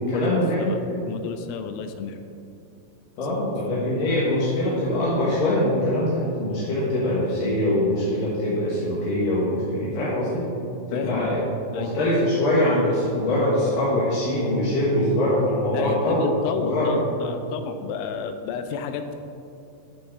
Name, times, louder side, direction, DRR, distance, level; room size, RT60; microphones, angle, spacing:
voice 1, 0.1-1.0 3.2-10.5 10.9-11.4 11.7-16.2 16.6-17.0, left 1 dB, 65° left, -8 dB, 2.2 m, -23 dB
voice 2, 1.1-2.2 10.9-11.3 11.7-11.9 15.7-19.2, left 7 dB, 85° left, 7 dB, 2.8 m, -31 dB
11.5 x 5.8 x 4.1 m, 2.7 s
omnidirectional pair, 5.9 m